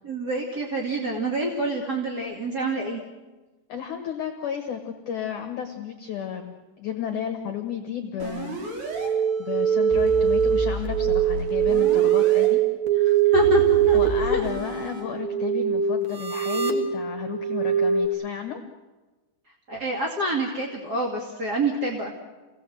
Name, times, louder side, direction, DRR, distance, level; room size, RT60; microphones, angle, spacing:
voice 1, 0.0-3.0 12.9-14.5 19.7-22.1, equal, 35° right, -1 dB, 1.8 m, -27 dB
voice 2, 3.7-8.6 9.1-12.6 13.2-13.3 13.9-18.6, left 9 dB, 60° left, 5 dB, 2.2 m, -33 dB
sound 1, 8.2-9.1 9.9-12.5 13.3-15.0, equal, 60° right, 6.3 m, -33 dB
sound 2, 8.9-18.1, right 9 dB, 80° right, 1.2 m, -22 dB
28.5 x 19.0 x 7.8 m, 1.2 s
omnidirectional pair, 5.3 m